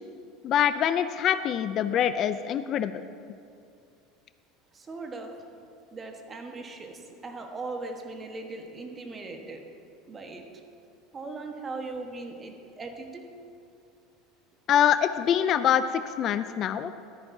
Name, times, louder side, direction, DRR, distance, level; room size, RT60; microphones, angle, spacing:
voice 1, 0.4-3.0 14.7-16.9, left 9 dB, 45° left, 12 dB, 0.3 m, -24 dB
voice 2, 4.7-5.5 5.9-9.6 10.1-10.5 11.1-13.3, right 3 dB, 25° right, 4 dB, 1.2 m, -39 dB
13.0 x 10.5 x 2.7 m, 2.5 s
supercardioid pair, 120°, 0 cm